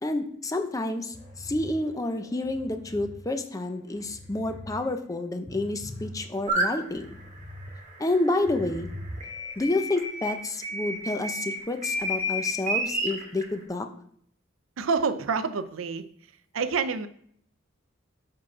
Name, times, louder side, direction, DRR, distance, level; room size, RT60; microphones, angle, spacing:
voice 1, 0.0-7.1 8.0-8.9 9.6-13.9, left 2 dB, 15° left, 7 dB, 0.6 m, -29 dB
sound 1, 1.1-3.2 3.6-4.7 5.1-7.7 8.1-9.5, left 1 dB, 45° left, 2.6 m, -43 dB
sound 2, 6.5-6.7 7.4-10.4 10.6-13.4, equal, 35° right, 1.4 m, -30 dB
voice 2, 14.8-16.1 16.5-17.1, right 5 dB, 80° right, 12 dB, 0.5 m, -27 dB
4.9 x 4.7 x 5.9 m, 0.64 s
head